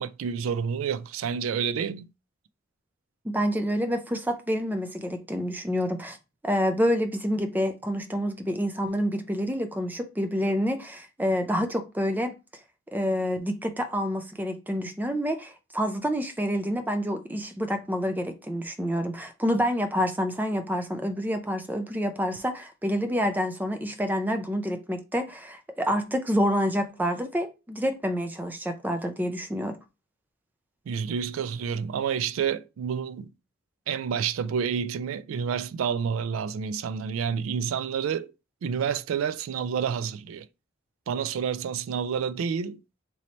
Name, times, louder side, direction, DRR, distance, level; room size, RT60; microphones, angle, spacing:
voice 1, 0.0-2.1 30.9-33.3 33.9-38.3 38.6-40.5 41.1-42.8, right 7 dB, 85° right, 0.3 m, -29 dB
voice 2, 3.2-6.2 6.4-12.3 12.9-29.8, equal, 10° right, 0.4 m, -28 dB
3.1 x 2.8 x 4.1 m
head